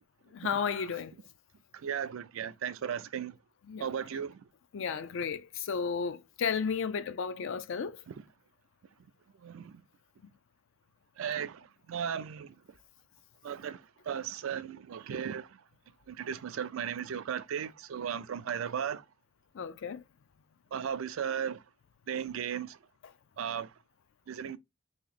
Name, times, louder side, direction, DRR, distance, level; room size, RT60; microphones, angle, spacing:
voice 1, 0.3-1.1 3.7-3.9 4.7-8.0 19.5-20.0, left 6 dB, 65° left, 0.4 m, -33 dB
voice 2, 1.7-3.4 3.8-4.4 8.1-8.2 9.4-9.8 11.2-12.5 13.4-15.6 16.1-19.0 20.7-21.6 22.1-22.8 23.4-23.7 24.3-24.6, right 8 dB, 70° right, 0.4 m, -36 dB
2.9 x 2.8 x 4.1 m
head